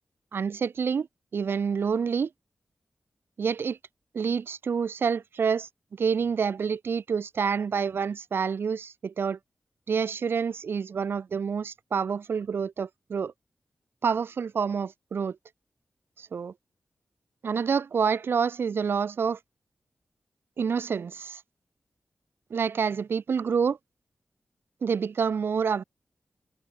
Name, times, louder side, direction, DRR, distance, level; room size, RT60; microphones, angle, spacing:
voice 1, 0.3-1.1 1.3-2.3 3.4-3.8 4.1-5.7 6.0-9.4 9.9-13.3 14.0-15.4 16.2-16.5 17.4-19.4 20.6-21.4 22.5-23.8 24.8-25.8, right 6 dB, 65° right, 0.9 m, -27 dB
wide cardioid pair, 155°, 4 cm